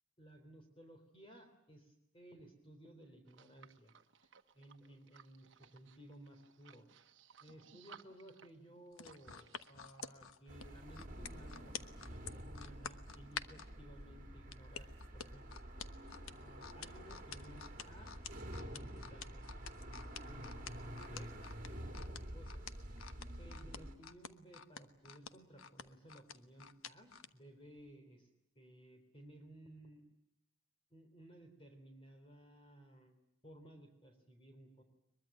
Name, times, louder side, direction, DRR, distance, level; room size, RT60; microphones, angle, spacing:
voice 1, 0.2-3.9 4.2-6.9 7.4-15.6 16.3-18.2 18.6-19.5 20.2-21.4 21.7-23.0 23.4-28.3 28.6-30.0 30.9-34.8, right 1 dB, 25° left, 5 dB, 3.5 m, -58 dB
sound 1, 3.3-10.0, right 6 dB, 60° right, 1.3 m, -61 dB
sound 2, 8.9-13.7 14.5-27.3 27.8-27.9, left 7 dB, 90° left, 1.2 m, -48 dB
sound 3, 10.5-24.0, right 1 dB, 40° right, 2.6 m, -49 dB
22.5 x 22.5 x 9.1 m, 0.79 s
head